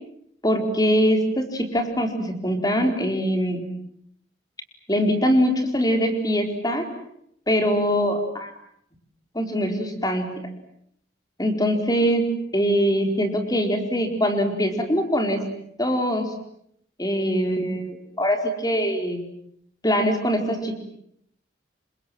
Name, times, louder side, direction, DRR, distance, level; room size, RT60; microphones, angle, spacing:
voice 1, 0.4-3.6 4.9-6.9 7.5-8.5 9.3-10.3 11.4-12.3 12.5-15.4 15.8-16.3 17.0-19.2 19.8-20.8, equal, 20° left, 5 dB, 4.4 m, -23 dB
29.0 x 26.0 x 7.7 m, 0.72 s
head